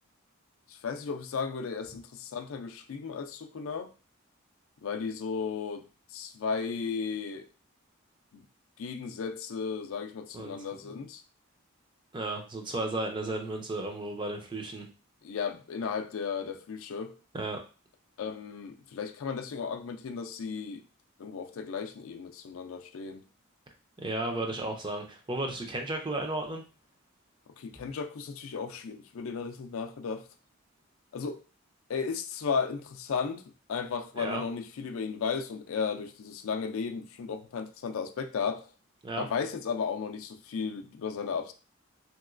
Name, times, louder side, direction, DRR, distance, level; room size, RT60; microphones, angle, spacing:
voice 1, 0.7-3.9 4.8-7.5 8.3-8.4 8.8-11.2 15.2-17.1 18.2-20.8 21.2-23.2 27.6-30.2 31.1-31.4 31.9-33.4 33.7-38.7 39.2-41.5, left 5 dB, 75° left, 6 dB, 0.4 m, -35 dB
voice 2, 12.1-14.9 17.3-17.6 24.0-26.6 34.2-34.4 39.0-39.3, right 2 dB, 20° right, 3 dB, 0.4 m, -34 dB
3.0 x 2.9 x 2.5 m, 0.35 s
head